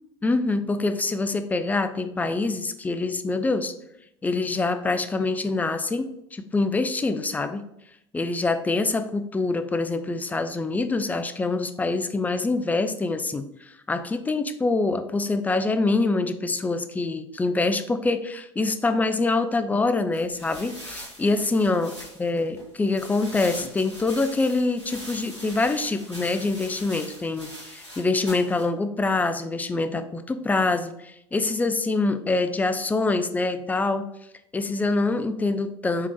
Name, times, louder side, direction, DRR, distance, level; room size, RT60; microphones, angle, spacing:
voice 1, 0.2-3.7 4.2-7.6 8.1-21.9 22.2-34.1 34.5-36.1, left 3 dB, 10° left, 10 dB, 0.4 m, -25 dB
sound 1, 20.1-28.6, equal, 90° left, 1.3 m, -42 dB
4.7 x 3.4 x 3.0 m, 0.80 s
figure-of-eight pair, 70°, 14 cm